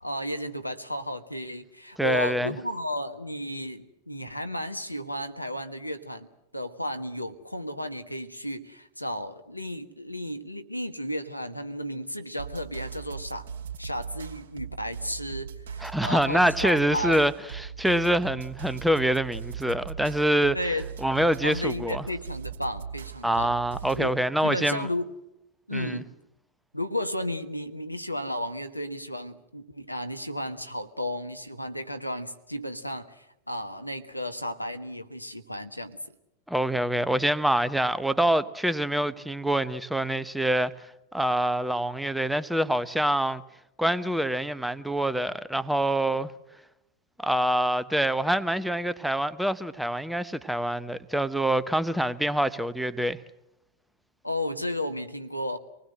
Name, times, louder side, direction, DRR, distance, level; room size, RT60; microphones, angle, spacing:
voice 1, 0.0-6.3 6.5-13.5 13.8-17.2 20.5-20.9 21.4-23.6 23.9-24.2 24.4-25.1 25.7-26.1 26.7-36.0 54.2-55.6, left 1 dB, 90° left, 1.4 m, -33 dB
voice 2, 2.0-2.5 15.8-17.3 17.6-20.6 21.0-22.0 23.2-24.9 25.7-26.0 36.5-40.7 41.1-43.4 43.8-46.3 47.2-53.2, right 1 dB, ahead, 0.9 m, -25 dB
sound 1, 12.4-24.1, right 6 dB, 60° right, 2.7 m, -39 dB
26.0 x 20.0 x 7.8 m
figure-of-eight pair, 90°, 0 cm